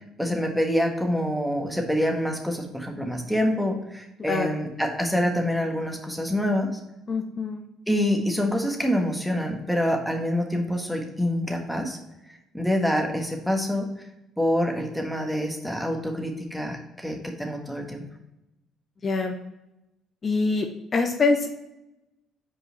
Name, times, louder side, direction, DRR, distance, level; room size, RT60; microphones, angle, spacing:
voice 1, 0.2-6.7 7.9-12.0 12.5-13.9 14.4-18.0, equal, ahead, 2 dB, 1.5 m, -26 dB
voice 2, 7.1-7.6 19.0-19.3 20.2-20.7 20.9-21.5, left 3 dB, 40° left, 4 dB, 0.8 m, -24 dB
5.0 x 4.8 x 4.0 m, 0.92 s
hypercardioid pair, 60°, 0 cm